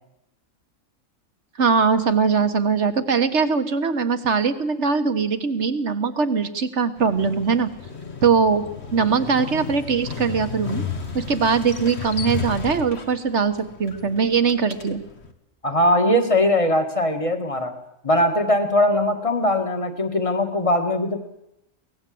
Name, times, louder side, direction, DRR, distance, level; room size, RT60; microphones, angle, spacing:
voice 1, 1.6-7.7 8.2-8.7 8.9-10.8 11.1-15.0, right 5 dB, 60° right, 10 dB, 1.6 m, -21 dB
Motorcycle, 7.0-15.3, left 5 dB, 55° left, 2.0 m, -34 dB
voice 2, 15.6-17.8 18.0-21.2, left 1 dB, 25° left, 6 dB, 2.0 m, -20 dB
23.5 x 18.5 x 7.8 m, 0.86 s
omnidirectional pair, 1.4 m